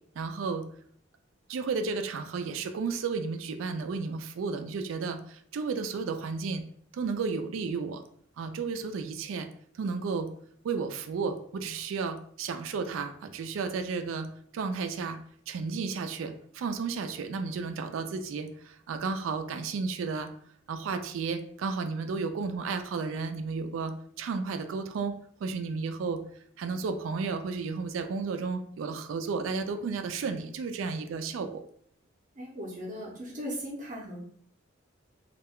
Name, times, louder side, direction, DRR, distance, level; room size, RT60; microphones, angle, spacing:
voice 1, 0.2-0.6 1.5-6.6 6.9-8.0 8.4-9.5 9.7-10.3 10.6-15.2 15.5-20.3 20.7-25.2 25.4-26.2 26.6-31.6, right 4 dB, 90° right, 7 dB, 0.3 m, -33 dB
voice 2, 32.4-34.2, equal, 40° right, -3 dB, 0.6 m, -38 dB
2.3 x 2.1 x 3.5 m, 0.62 s
head